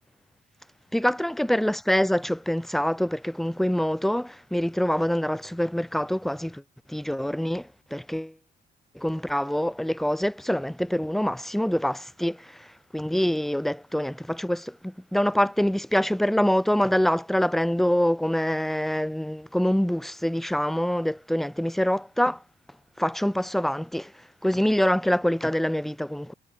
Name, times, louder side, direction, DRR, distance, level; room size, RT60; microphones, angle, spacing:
voice 1, 0.9-6.6 6.9-8.3 8.9-22.4 23.0-26.3, equal, ahead, 0.4 m, -25 dB
cardioid pair, 90°, 20 cm